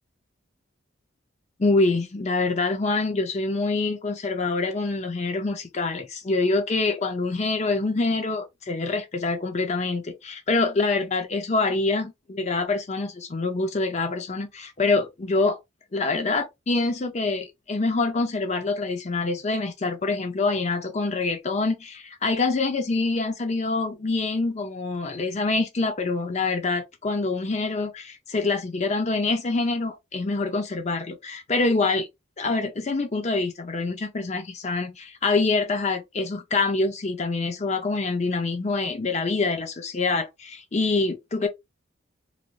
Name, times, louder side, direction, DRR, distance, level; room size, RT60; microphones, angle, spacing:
voice 1, 1.6-15.6 15.9-32.1 32.4-41.5, left 3 dB, 35° left, 0.5 m, -25 dB
3.2 x 2.6 x 2.3 m
head